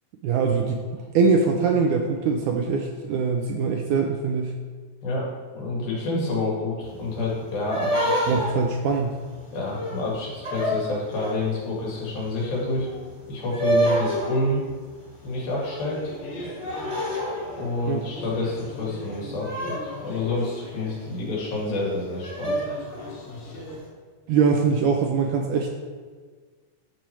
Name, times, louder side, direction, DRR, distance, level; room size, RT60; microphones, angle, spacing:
voice 1, 0.2-0.8 1.1-4.5 8.3-9.2 17.9-18.0 24.3-25.7, right 5 dB, 80° right, 3 dB, 1.8 m, -22 dB
voice 2, 5.5-8.4 9.5-12.9 13.3-14.6 15.2-16.1 17.6-19.8 20.0-22.6, left 2 dB, 90° left, -5 dB, 3.9 m, -28 dB
sound 1, 6.8-11.6 12.1-18.8 19.1-20.8 21.3-21.4 21.8-21.9 22.2-23.4, right 1 dB, 15° right, 1.2 m, -29 dB
sound 2, 15.7-23.8, left 1 dB, 70° left, 3.6 m, -40 dB
11.5 x 4.5 x 4.5 m, 1.5 s
omnidirectional pair, 4.0 m